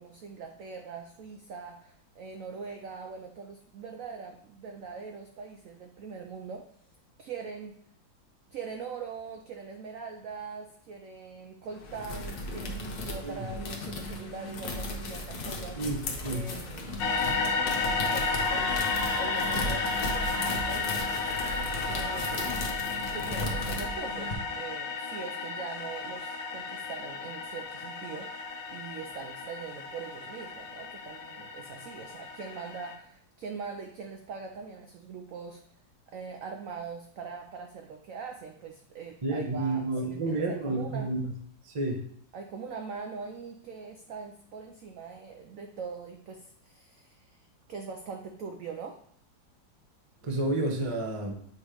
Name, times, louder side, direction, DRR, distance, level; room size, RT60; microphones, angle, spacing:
voice 1, 0.0-6.6 7.2-7.7 8.5-15.8 16.3-16.9 17.8-18.9 19.2-21.1 21.9-22.5 23.1-35.6 36.1-41.1 42.3-49.0, right 5 dB, 80° right, 4 dB, 0.7 m, -42 dB
sound 1, 11.7-24.3, left 1 dB, 60° left, 1.4 m, -36 dB
sound 2, 17.0-32.9, left 4 dB, 75° left, 1.4 m, -33 dB
Screaming, 18.3-22.6, right 2 dB, 60° right, 1.9 m, -41 dB
voice 2, 39.2-41.2 41.6-42.0 50.2-51.3, right 2 dB, 35° right, 2 dB, 0.5 m, -30 dB
7.1 x 3.0 x 4.9 m, 0.63 s
omnidirectional pair, 2.0 m